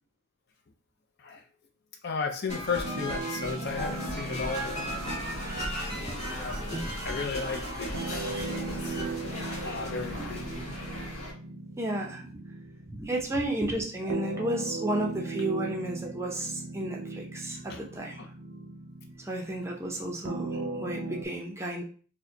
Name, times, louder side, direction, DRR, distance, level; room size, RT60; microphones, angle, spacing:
voice 1, 2.0-4.9 6.3-10.8 17.7-17.8 18.2-18.3, left 5 dB, 50° left, 4 dB, 0.5 m, -35 dB
sound 1, 2.5-11.0, equal, 30° left, 1.6 m, -37 dB
sound 2, 2.8-21.2, right 3 dB, 65° right, 0.6 m, -39 dB
sound 3, 3.6-11.3, left 1 dB, 80° left, 1.2 m, -40 dB
voice 2, 11.8-12.4 12.9-18.2 19.2-21.8, right 1 dB, 10° right, 0 dB, 0.5 m, -33 dB
4.5 x 2.1 x 2.7 m, 0.40 s
head